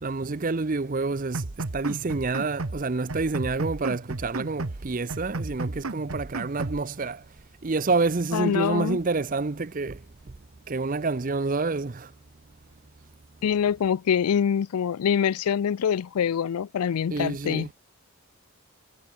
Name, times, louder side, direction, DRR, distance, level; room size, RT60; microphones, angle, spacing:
voice 1, 0.0-7.2 7.6-10.3 10.7-12.1 17.1-17.7, right 3 dB, 35° right, 0.6 m, -28 dB
sound 1, 1.3-2.8 3.1-4.8 5.1-6.8, right 2 dB, 75° right, 1.2 m, -33 dB
voice 2, 8.3-9.0 13.4-17.7, left 8 dB, 85° left, 0.4 m, -25 dB
head